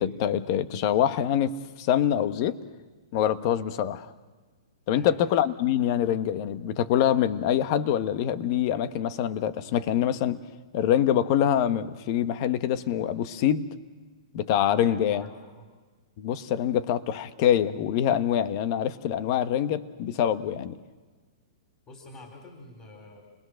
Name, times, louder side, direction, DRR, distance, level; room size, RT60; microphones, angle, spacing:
voice 1, 0.0-2.6 3.1-4.1 4.9-10.4 10.7-13.6 14.3-15.2 16.2-20.8, left 10 dB, 45° left, 11 dB, 1.2 m, -25 dB
voice 2, 5.0-5.3 14.9-15.7 21.9-23.3, left 2 dB, 25° left, 1 dB, 4.0 m, -47 dB
29.5 x 21.0 x 6.4 m, 1.3 s
hypercardioid pair, 135°, 3 cm